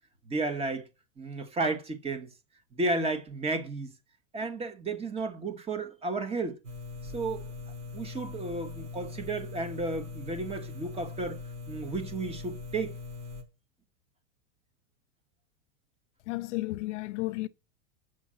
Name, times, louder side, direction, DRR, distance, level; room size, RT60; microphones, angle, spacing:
voice 1, 0.3-0.9 1.2-2.3 2.7-3.9 4.3-6.6 7.0-7.5 7.9-11.4 11.7-12.9, right 3 dB, 15° right, 1.2 m, -33 dB
sound 1, 6.6-13.4, left 4 dB, 70° right, 4.4 m, -41 dB
voice 2, 16.3-17.5, left 20 dB, 60° left, 0.7 m, -33 dB
7.3 x 6.3 x 7.4 m
supercardioid pair, 150°, 40 cm